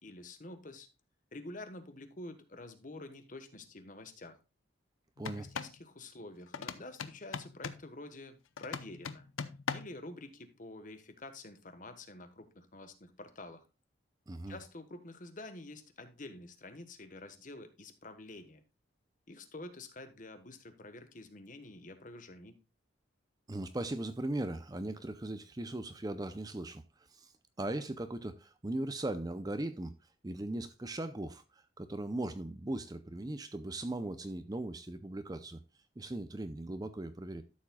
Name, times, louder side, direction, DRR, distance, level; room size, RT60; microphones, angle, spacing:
voice 1, 0.0-0.9 1.3-4.4 5.4-9.3 9.7-13.6 14.5-18.6 19.3-22.6, left 2 dB, 40° left, 1.2 m, -48 dB
sound 1, 5.2-5.8 6.5-7.9 8.6-10.0, left 6 dB, 80° left, 0.7 m, -40 dB
voice 2, 5.2-5.5 14.3-14.6 23.5-27.3 27.6-29.9 30.2-35.6 36.0-37.4, right 1 dB, 20° right, 0.5 m, -38 dB
13.0 x 7.2 x 2.3 m
head